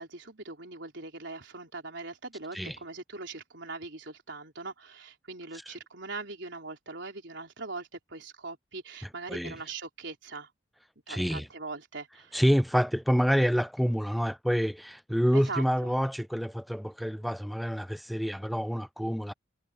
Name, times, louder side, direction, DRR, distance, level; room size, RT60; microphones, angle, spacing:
voice 1, 0.0-10.5 11.1-12.4 15.3-15.9, right 3 dB, 65° right, 3.9 m, -41 dB
voice 2, 11.1-11.5 12.3-19.3, equal, ahead, 0.3 m, -27 dB
head